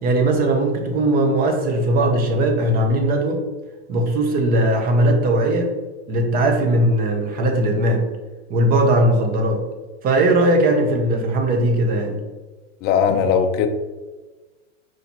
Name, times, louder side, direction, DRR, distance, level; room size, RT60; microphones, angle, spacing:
voice 1, 0.0-3.4 3.9-5.7 6.1-8.1 8.5-9.6 10.0-12.2, right 1 dB, 25° right, 3 dB, 1.0 m, -19 dB
voice 2, 12.8-13.7, left 7 dB, 30° left, 7 dB, 0.5 m, -18 dB
4.9 x 4.6 x 4.3 m, 1.2 s
supercardioid pair, 140°, 34 cm